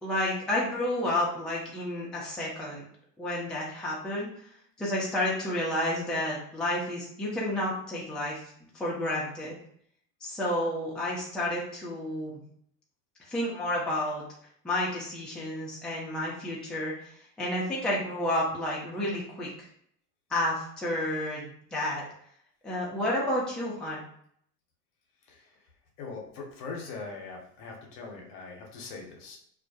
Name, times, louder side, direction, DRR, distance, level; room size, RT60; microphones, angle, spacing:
voice 1, 0.0-2.8 3.2-4.3 4.8-8.4 8.7-9.5 10.2-12.4 13.3-14.2 14.6-17.1 17.4-19.5 20.3-22.0 22.6-24.0, left 1 dB, ahead, -5 dB, 0.5 m, -30 dB
voice 2, 26.0-29.4, left 4 dB, 50° left, 0 dB, 0.9 m, -41 dB
2.4 x 2.1 x 2.7 m, 0.65 s
hypercardioid pair, 95°, 47 cm